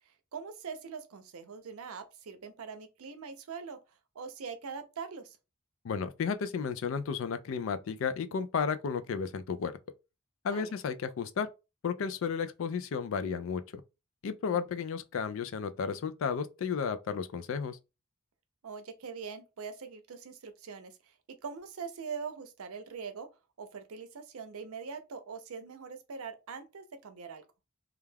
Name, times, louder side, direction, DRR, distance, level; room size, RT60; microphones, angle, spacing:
voice 1, 0.3-3.8 4.1-5.4 10.5-10.7 14.5-14.6 18.6-21.1 21.4-23.3 23.6-27.4, right 5 dB, 85° right, 0.5 m, -42 dB
voice 2, 5.8-9.8 10.4-11.5 11.8-13.6 14.2-17.8, left 6 dB, 65° left, 0.3 m, -33 dB
2.3 x 2.2 x 3.2 m
head